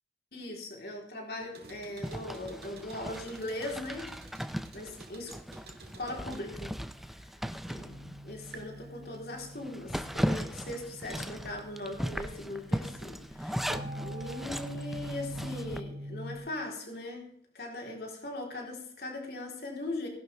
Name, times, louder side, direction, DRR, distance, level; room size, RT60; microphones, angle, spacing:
voice 1, 0.3-4.1 4.7-5.4 6.0-6.7 7.1-7.2 7.7-17.3 17.5-20.1, left 1 dB, 65° left, 0 dB, 3.7 m, -40 dB
sound 1, 1.4-8.1 8.5-9.3, right 3 dB, 65° right, 2.1 m, -53 dB
Zipper (clothing), 2.0-8.6 9.0-9.1 9.5-15.8, equal, ahead, 0.5 m, -37 dB
sound 2, 7.7-16.4, equal, 85° right, 1.7 m, -44 dB
18.5 x 11.0 x 3.5 m, 0.68 s
head